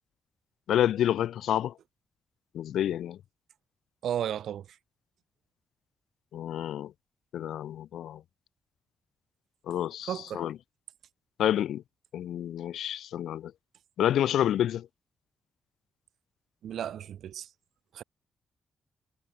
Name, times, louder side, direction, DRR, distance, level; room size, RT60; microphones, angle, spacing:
voice 1, 0.7-1.7 2.5-3.2 6.3-6.9 7.3-8.2 9.7-10.6 11.4-11.8 12.1-13.5 14.0-14.9, left 11 dB, 85° left, 0.5 m, -28 dB
voice 2, 4.0-4.8 10.1-10.4 16.6-17.5 17.9-18.0, right 10 dB, 80° right, 0.9 m, -34 dB
cardioid pair, 135°, 0 cm